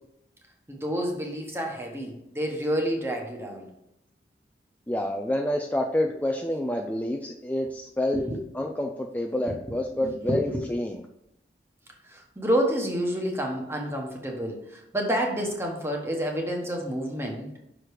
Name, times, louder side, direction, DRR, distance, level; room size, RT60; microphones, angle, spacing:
voice 1, 0.7-3.7 8.1-8.3 9.5-9.6 9.9-10.6 12.0-17.5, equal, 15° right, 1 dB, 1.1 m, -29 dB
voice 2, 4.9-8.2 8.5-11.0, left 1 dB, 10° left, 2 dB, 0.4 m, -28 dB
6.0 x 5.0 x 4.7 m, 0.84 s
head